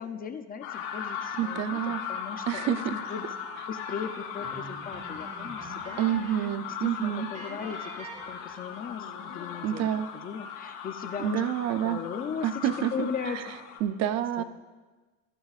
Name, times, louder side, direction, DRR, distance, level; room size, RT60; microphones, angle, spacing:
voice 1, 0.0-3.3 3.5-6.0 6.3-9.9 10.2-11.5 11.8-12.6 12.9-13.8 14.4-14.5, left 7 dB, 25° left, 8 dB, 0.5 m, -38 dB
sound 1, 0.6-13.8, left 7 dB, 75° left, 3.2 m, -38 dB
voice 2, 1.4-2.0 2.5-3.0 6.0-7.3 9.6-10.1 11.2-12.0 12.4-13.1 13.3-13.4 13.8-14.4, right 11 dB, 40° right, 11 dB, 0.6 m, -28 dB
sound 2, 4.4-6.6 6.9-7.0 7.3-9.0, right 2 dB, 15° right, 4.1 m, -45 dB
20.5 x 13.0 x 2.4 m, 1.3 s
cardioid pair, 155°, 40 cm